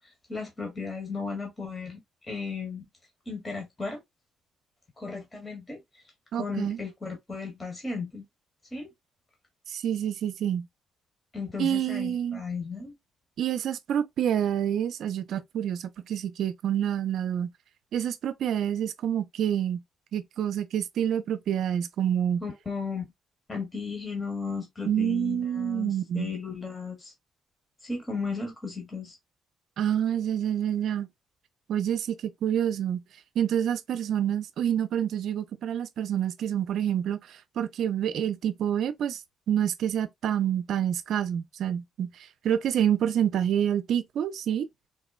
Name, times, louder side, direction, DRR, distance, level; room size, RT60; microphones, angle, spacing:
voice 1, 0.3-2.0 2.3-2.8 3.3-4.0 5.0-5.8 6.3-8.2 8.7-8.9 11.3-12.9 22.4-23.0 23.5-27.1 27.8-29.2, left 4 dB, 25° left, 1.2 m, -35 dB
voice 2, 6.3-6.8 9.7-10.7 11.6-12.4 13.4-17.5 17.9-19.8 20.1-22.4 24.9-26.3 29.8-31.1 31.7-33.0 33.4-39.2 39.5-42.1 42.4-44.7, right 9 dB, 70° right, 0.4 m, -27 dB
3.6 x 2.1 x 2.3 m
cardioid pair, 90°, 0 cm